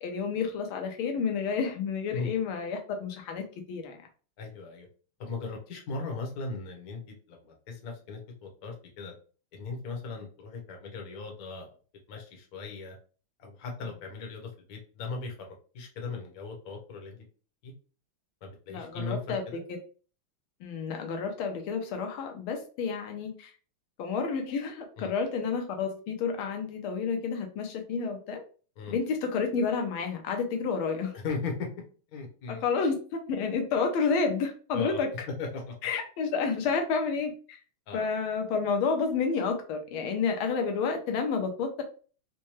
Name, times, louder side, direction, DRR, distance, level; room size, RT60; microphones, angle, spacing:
voice 1, 0.0-4.0 18.7-19.6 20.6-23.5 24.0-28.4 28.9-31.1 32.5-35.3 35.8-37.6 37.9-41.8, left 5 dB, 80° left, 4 dB, 1.6 m, -30 dB
voice 2, 4.4-4.9 5.2-9.1 9.5-11.7 12.1-13.0 13.4-17.2 17.6-17.7 18.4-19.2 19.5-19.6 25.0-25.1 28.8-29.0 31.1-31.7 32.1-32.6 34.7-35.0 35.4-35.7 37.9-38.1, left 4 dB, 55° left, 2 dB, 1.2 m, -38 dB
4.3 x 2.2 x 3.1 m, 0.38 s
omnidirectional pair, 2.4 m